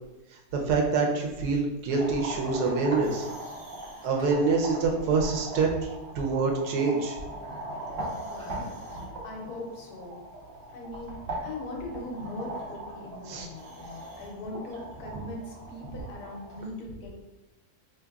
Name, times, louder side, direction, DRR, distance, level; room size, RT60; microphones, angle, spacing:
voice 1, 0.5-3.3 4.0-5.7 6.1-7.2 13.3-13.5, right 4 dB, 85° right, 1 dB, 1.2 m, -26 dB
sound 1, 1.9-16.6, right 1 dB, 50° right, 0.9 m, -40 dB
voice 2, 8.2-10.2 10.7-17.2, left 2 dB, 75° left, -1 dB, 1.3 m, -40 dB
3.9 x 3.1 x 2.3 m, 1.0 s
omnidirectional pair, 1.7 m